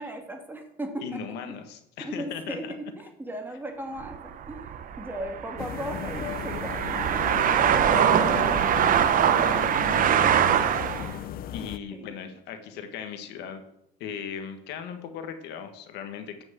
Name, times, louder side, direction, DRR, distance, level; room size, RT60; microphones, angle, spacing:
voice 1, 0.0-1.2 2.0-2.6 3.0-4.7 5.0-7.8 11.9-12.1, right 1 dB, 10° right, 3 dB, 2.1 m, -37 dB
voice 2, 1.0-2.7 8.7-10.2 11.5-13.6 14.0-16.4, left 7 dB, 85° left, 7 dB, 1.6 m, -38 dB
sound 1, 4.0-11.2, right 9 dB, 55° right, 0.9 m, -23 dB
sound 2, 5.6-11.8, left 10 dB, 60° left, 0.7 m, -35 dB
11.0 x 6.2 x 7.5 m, 0.76 s
cardioid pair, 110°, 17 cm